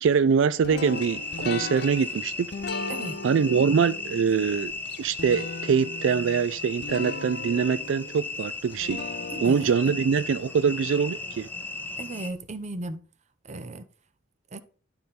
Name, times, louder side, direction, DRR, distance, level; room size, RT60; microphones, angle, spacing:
voice 1, 0.0-2.5 3.2-4.7 5.0-9.0 9.4-11.5, right 6 dB, 75° right, 0.3 m, -24 dB
sound 1, 0.6-11.7, left 4 dB, 60° left, 0.7 m, -38 dB
sound 2, 0.8-12.3, left 3 dB, 10° left, 0.7 m, -36 dB
voice 2, 2.9-3.2 9.3-10.0 12.0-13.0 13.4-13.9 14.5-14.6, right 2 dB, 40° right, 0.7 m, -36 dB
11.5 x 3.9 x 4.1 m
head